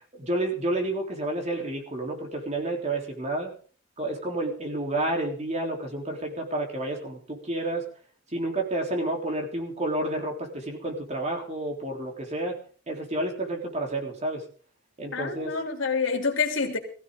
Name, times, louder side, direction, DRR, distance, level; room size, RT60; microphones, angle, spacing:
voice 1, 0.1-3.5 4.0-7.8 8.3-12.6 12.9-14.4 15.0-15.5, right 1 dB, 35° right, 2 dB, 3.7 m, -30 dB
voice 2, 15.1-16.8, left 5 dB, 80° left, 3 dB, 3.4 m, -27 dB
19.5 x 15.5 x 3.8 m, 0.41 s
head